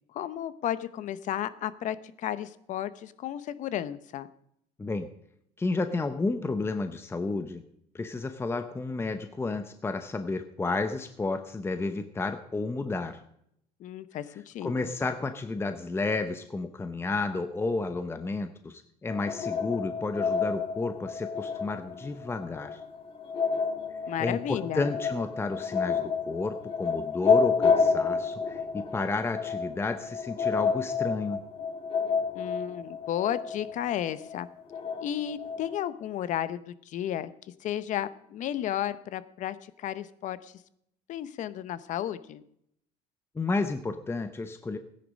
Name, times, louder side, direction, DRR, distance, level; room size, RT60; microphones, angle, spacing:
voice 1, 0.1-4.3 13.8-14.9 24.1-24.9 32.3-34.5 35.0-37.3 37.6-40.5 41.1-42.4, left 11 dB, 55° left, 15 dB, 0.9 m, -33 dB
voice 2, 5.6-7.6 7.9-13.2 14.6-22.8 24.2-31.4 43.3-44.8, left 3 dB, 15° left, 9 dB, 0.8 m, -31 dB
sound 1, 19.1-35.8, left 5 dB, 40° left, 1.8 m, -30 dB
16.0 x 10.0 x 5.3 m, 0.74 s
supercardioid pair, 105°, 15 cm